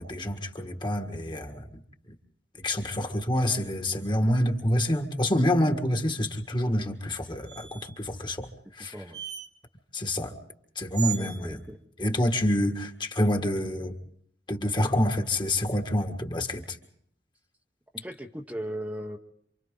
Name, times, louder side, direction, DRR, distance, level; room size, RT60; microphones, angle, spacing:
voice 1, 0.0-1.8 2.6-8.9 9.9-10.3 10.7-11.6 12.0-13.9 14.5-16.8, left 1 dB, 25° left, 5 dB, 1.7 m, -27 dB
sound 1, 7.5-8.0 9.1-9.5 10.9-11.4, right 11 dB, 65° right, 1.1 m, -36 dB
voice 2, 8.8-9.2 11.2-11.8 17.9-19.2, equal, 10° right, 1 dB, 1.0 m, -37 dB
28.0 x 25.5 x 3.9 m, 0.66 s
head